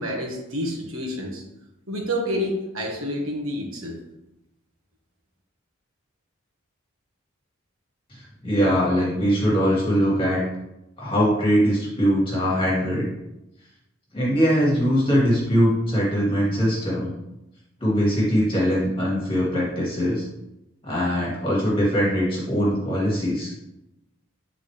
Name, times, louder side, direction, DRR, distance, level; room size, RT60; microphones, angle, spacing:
voice 1, 0.0-1.4 1.9-3.9, equal, 80° right, -1 dB, 1.5 m, -28 dB
voice 2, 8.1-10.4 11.0-13.1 14.1-17.1 17.8-20.2 20.8-23.5, equal, 25° left, -5 dB, 2.2 m, -22 dB
8.3 x 4.0 x 3.3 m, 0.91 s
head